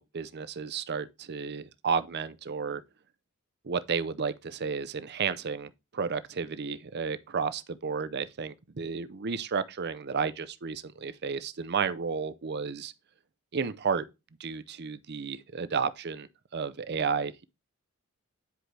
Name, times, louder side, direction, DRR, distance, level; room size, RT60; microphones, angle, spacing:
voice 1, 0.0-2.8 3.6-12.9 13.5-14.1 14.4-17.4, right 5 dB, 50° right, 0.6 m, -32 dB
10.0 x 4.8 x 3.3 m
head